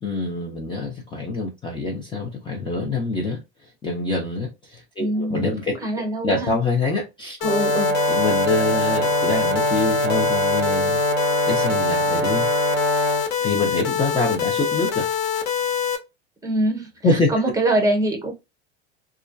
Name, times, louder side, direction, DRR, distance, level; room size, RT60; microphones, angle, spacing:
voice 1, 0.0-7.4 8.1-11.0 11.5-12.5 13.4-15.1 17.0-17.3, left 3 dB, 15° left, 0.5 m, -25 dB
voice 2, 5.0-5.5 5.8-6.5 7.4-8.0 16.4-16.9 17.3-18.3, right 1 dB, 10° right, 0.8 m, -23 dB
sound 1, 7.4-16.0, left 8 dB, 50° left, 0.7 m, -24 dB
Brass instrument, 7.4-13.3, right 2 dB, 45° right, 0.7 m, -23 dB
2.3 x 2.1 x 2.5 m
supercardioid pair, 115°, 30 cm